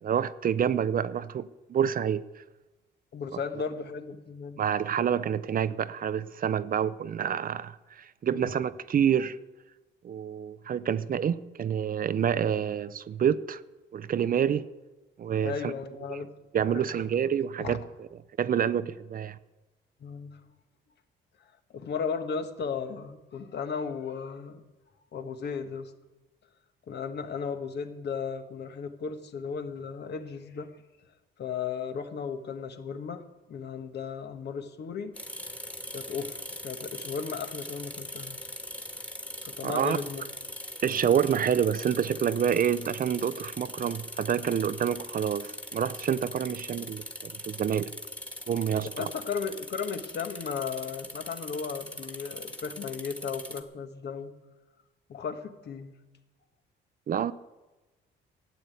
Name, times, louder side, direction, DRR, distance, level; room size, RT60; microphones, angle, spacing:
voice 1, 0.0-2.2 4.6-9.4 10.0-13.6 13.9-14.7 15.2-15.7 16.1-16.2 16.5-17.8 18.4-19.4 39.6-40.0 40.8-47.9 48.5-49.0 57.1-57.3, right 8 dB, 45° right, 0.5 m, -28 dB
voice 2, 3.1-4.6 8.3-8.5 15.4-16.3 16.6-17.1 17.6-17.8 20.0-20.4 21.7-24.6 25.1-25.9 26.9-30.7 31.4-35.1 35.9-38.4 39.4-40.2 49.0-54.3 55.1-56.0, left 6 dB, 60° left, 1.4 m, -35 dB
sound 1, 35.2-53.6, left 1 dB, 5° left, 1.7 m, -41 dB
13.0 x 8.6 x 9.1 m
cardioid pair, 90°, 20 cm